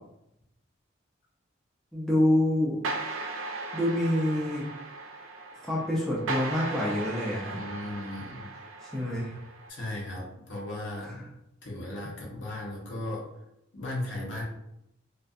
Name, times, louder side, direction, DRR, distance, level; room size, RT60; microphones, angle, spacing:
voice 1, 1.9-2.8 3.7-4.6 5.6-7.6 8.8-9.4 11.0-11.3, left 1 dB, ahead, -6 dB, 0.4 m, -27 dB
sound 1, 2.8-9.7, right 3 dB, 85° right, 0.4 m, -37 dB
voice 2, 7.5-8.5 9.7-11.2 11.6-13.3 13.7-14.4, left 1 dB, 70° left, -3 dB, 0.7 m, -36 dB
2.4 x 2.2 x 2.5 m, 0.83 s
head